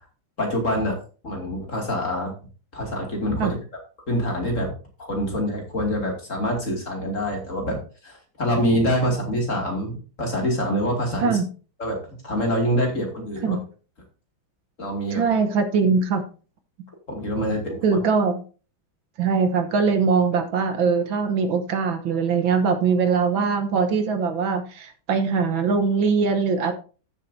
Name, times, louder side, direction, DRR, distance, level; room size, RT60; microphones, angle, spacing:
voice 1, 0.4-1.0 1.2-2.3 2.7-3.6 4.1-4.7 5.0-11.3 11.8-12.0 12.2-13.6 14.8-15.2 17.1-17.8, equal, 35° left, 0 dB, 2.7 m, -25 dB
voice 2, 15.1-16.2 17.8-18.4 19.2-26.7, right 5 dB, 70° right, 7 dB, 1.8 m, -21 dB
14.0 x 7.4 x 2.7 m, 0.38 s
omnidirectional pair, 2.3 m